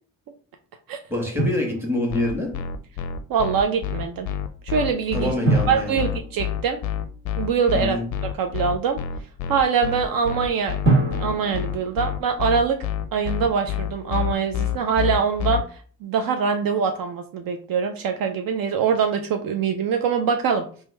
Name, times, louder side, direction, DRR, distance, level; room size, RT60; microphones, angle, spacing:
voice 1, 1.1-2.5 5.1-6.1 7.7-8.1, left 1 dB, 5° right, 1.3 m, -26 dB
Drum, 1.4-2.5 5.4-7.3 10.8-12.8, right 2 dB, 30° right, 1.5 m, -26 dB
sound 1, 2.1-15.6, left 9 dB, 50° left, 0.4 m, -27 dB
voice 2, 3.3-4.3 4.6-5.3 5.7-6.8 7.4-8.0 8.4-9.0 9.5-10.8 11.2-12.8 13.1-15.6 16.0-20.8, right 6 dB, 60° right, 0.5 m, -23 dB
2.9 x 2.2 x 3.2 m
supercardioid pair, 60°, 39 cm